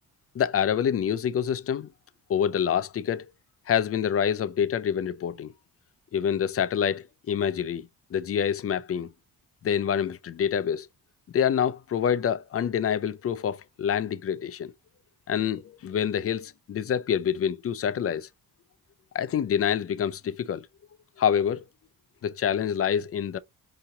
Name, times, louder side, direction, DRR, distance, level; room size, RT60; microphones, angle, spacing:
voice 1, 0.3-1.9 2.3-3.3 3.7-5.5 6.1-9.1 9.6-10.9 11.3-14.7 15.3-18.3 19.1-20.7 21.2-21.6 22.2-23.4, left 8 dB, 40° left, 0.5 m, -26 dB
4.9 x 2.9 x 2.7 m
cardioid pair, 90°, 38 cm